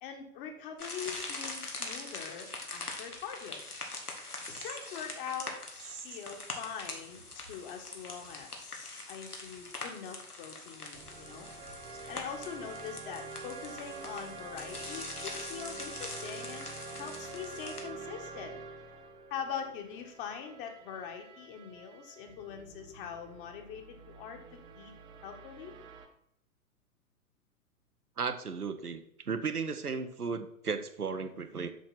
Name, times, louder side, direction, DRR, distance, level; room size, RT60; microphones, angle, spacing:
voice 1, 0.0-3.6 4.5-11.5 11.9-16.7 17.0-18.5 19.3-24.9 25.2-25.7, left 7 dB, 35° left, 4 dB, 1.8 m, -43 dB
sound 1, 0.8-17.8, left 2 dB, 90° left, 2.1 m, -43 dB
sound 2, 10.9-26.1, right 4 dB, 10° right, 0.5 m, -47 dB
voice 2, 28.2-31.7, right 5 dB, 85° right, 8 dB, 1.1 m, -35 dB
7.3 x 6.5 x 5.8 m, 0.74 s
figure-of-eight pair, 115°, 44 cm